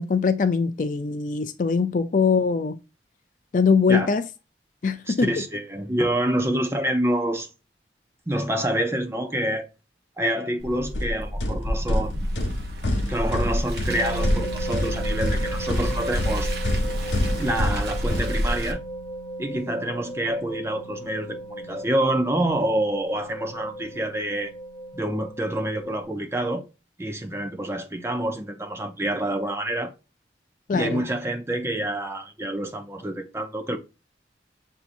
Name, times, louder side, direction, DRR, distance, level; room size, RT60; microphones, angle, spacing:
voice 1, 0.0-2.8 3.5-4.2 4.8-5.3 30.7-31.0, left 5 dB, 45° left, 0.4 m, -22 dB
voice 2, 5.1-7.5 8.3-9.7 10.2-12.4 13.1-16.5 17.4-18.8 19.4-24.5 24.9-26.6 27.0-29.9 30.7-33.8, right 1 dB, 15° right, 0.5 m, -27 dB
Car, 10.6-18.7, equal, 60° right, 0.9 m, -29 dB
sound 1, 10.9-18.9, left 1 dB, 85° left, 0.9 m, -29 dB
sound 2, 13.9-26.0, right 2 dB, 15° left, 1.0 m, -36 dB
6.9 x 2.8 x 2.5 m
head